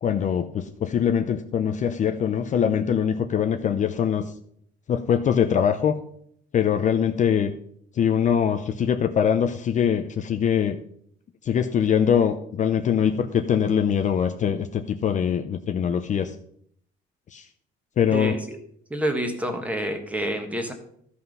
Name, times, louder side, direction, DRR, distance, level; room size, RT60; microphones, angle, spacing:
voice 1, 0.0-4.3 4.9-5.9 6.5-7.5 8.0-10.8 11.4-16.3 17.3-17.4 18.0-18.4, left 8 dB, 40° left, 7 dB, 0.6 m, -23 dB
voice 2, 18.1-18.6 18.9-20.7, right 1 dB, 5° right, 5 dB, 1.5 m, -28 dB
13.5 x 5.7 x 5.4 m, 0.66 s
cardioid pair, 145°, 20 cm